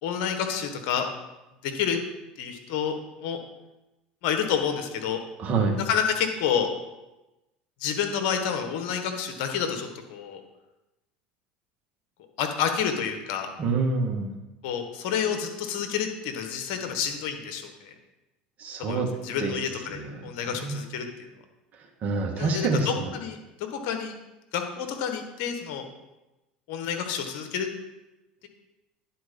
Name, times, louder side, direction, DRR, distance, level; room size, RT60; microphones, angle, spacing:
voice 1, 0.0-1.1 1.6-2.0 2.4-3.4 4.2-5.2 5.8-6.7 7.8-10.4 12.4-13.5 14.6-17.9 18.8-21.0 22.4-23.4 23.7-24.1 24.5-25.9 26.7-27.7, left 7 dB, 65° left, 5 dB, 1.3 m, -29 dB
voice 2, 5.4-5.8 13.6-14.3 18.6-19.1 19.4-19.5 19.9-20.1 20.6-20.8 22.0-23.1, right 4 dB, 40° right, 1 dB, 1.7 m, -26 dB
10.5 x 4.3 x 5.3 m, 1.0 s
hypercardioid pair, 80°, 4 cm